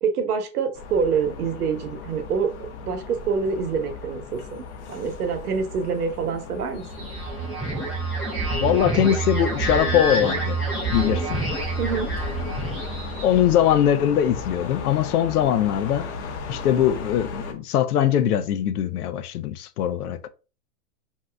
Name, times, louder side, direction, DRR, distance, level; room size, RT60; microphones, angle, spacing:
voice 1, 0.0-7.1 11.8-12.1, right 6 dB, 85° right, 0.9 m, -26 dB
sound 1, 0.7-17.5, left 5 dB, 50° left, 0.8 m, -36 dB
sound 2, 6.9-13.5, right 3 dB, ahead, 0.5 m, -27 dB
voice 2, 8.5-10.6 10.9-11.4 13.2-16.1 16.5-20.3, left 10 dB, 80° left, 0.6 m, -21 dB
2.7 x 2.3 x 3.3 m
hypercardioid pair, 135°, 44 cm